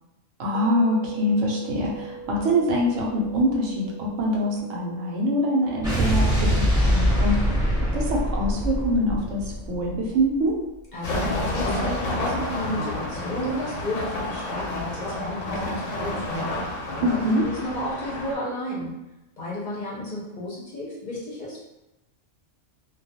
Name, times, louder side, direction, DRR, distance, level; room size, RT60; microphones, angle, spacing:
voice 1, 0.4-7.4 7.9-10.6 17.0-17.4, equal, 85° right, -2 dB, 1.0 m, -24 dB
sound 1, 0.5-10.6, right 4 dB, 60° right, 0.3 m, -44 dB
Explosion, 5.8-10.2, equal, 5° right, 0.8 m, -23 dB
voice 2, 10.9-17.1 17.4-19.0 19.4-21.6, left 1 dB, 45° left, -6 dB, 0.7 m, -32 dB
sound 2, 11.0-18.3, left 1 dB, 90° left, 1.0 m, -29 dB
2.3 x 2.2 x 2.7 m, 0.96 s
omnidirectional pair, 1.3 m